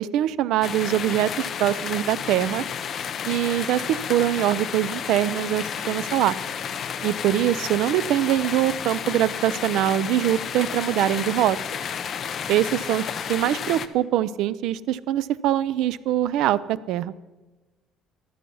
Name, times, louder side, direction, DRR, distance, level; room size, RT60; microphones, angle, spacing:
voice 1, 0.0-2.6 3.3-6.4 7.0-11.6 12.5-17.1, right 12 dB, 65° right, 17 dB, 0.5 m, -23 dB
sound 1, 0.6-13.9, left 8 dB, 35° left, 0.6 m, -31 dB
14.0 x 12.5 x 5.5 m, 1.2 s
cardioid pair, 165°, 0 cm